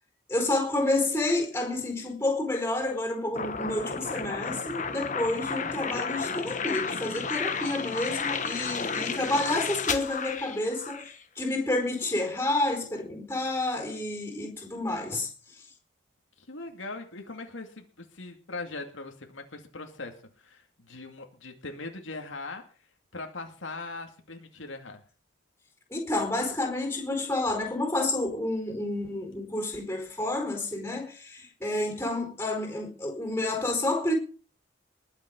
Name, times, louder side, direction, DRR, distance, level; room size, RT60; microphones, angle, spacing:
voice 1, 0.3-15.3 25.9-34.1, left 2 dB, 10° left, 4.6 m, -29 dB
sound 1, 3.4-11.2, left 5 dB, 40° left, 1.4 m, -32 dB
voice 2, 16.4-22.6 23.1-25.0, left 3 dB, 80° left, 2.3 m, -40 dB
20.5 x 7.5 x 5.3 m
head